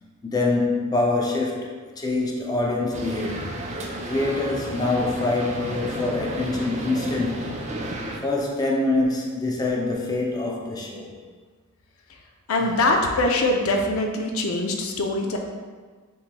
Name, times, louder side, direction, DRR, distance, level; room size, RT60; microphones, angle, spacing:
voice 1, 0.2-3.5 4.1-7.5 8.2-11.1 12.6-12.7, left 2 dB, 20° left, -2 dB, 0.5 m, -25 dB
sound 1, 2.9-8.2, right 1 dB, 35° right, 0.5 m, -33 dB
voice 2, 12.5-15.4, left 2 dB, 75° left, 2 dB, 0.6 m, -23 dB
7.0 x 3.1 x 2.2 m, 1.5 s
head